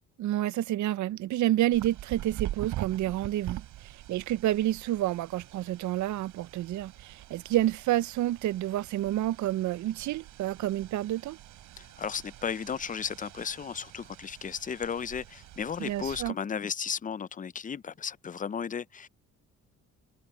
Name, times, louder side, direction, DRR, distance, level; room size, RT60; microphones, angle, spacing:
voice 1, 0.2-11.4 15.8-16.3, right 14 dB, 70° right, 0.6 m, -29 dB
sound 1, 1.7-16.3, right 14 dB, 90° right, 3.3 m, -44 dB
voice 2, 11.8-19.1, left 7 dB, 25° left, 0.5 m, -34 dB
cardioid pair, 90°, 30 cm